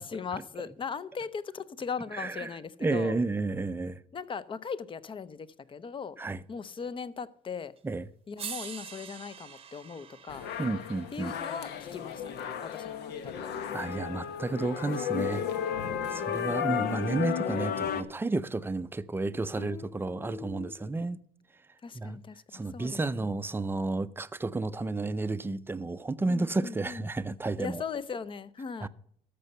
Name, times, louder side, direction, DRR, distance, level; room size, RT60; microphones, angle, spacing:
voice 1, 0.0-3.2 4.1-6.2 6.5-7.7 8.3-10.5 11.1-13.5 15.9-16.6 19.5-21.0 21.8-23.3 26.3-27.1 27.6-28.9, left 6 dB, 30° left, 0.6 m, -39 dB
voice 2, 2.1-4.0 6.2-6.4 7.8-8.1 10.6-11.3 13.7-15.5 16.1-21.2 21.9-22.2 22.5-27.8 28.8-28.9, right 3 dB, 15° right, 0.5 m, -32 dB
sound 1, 7.8-7.9 8.4-12.6 13.9-14.0, right 7 dB, 35° right, 0.8 m, -45 dB
sound 2, 10.3-18.0, left 8 dB, 80° left, 1.0 m, -33 dB
13.5 x 6.8 x 5.4 m
cardioid pair, 110°, 17 cm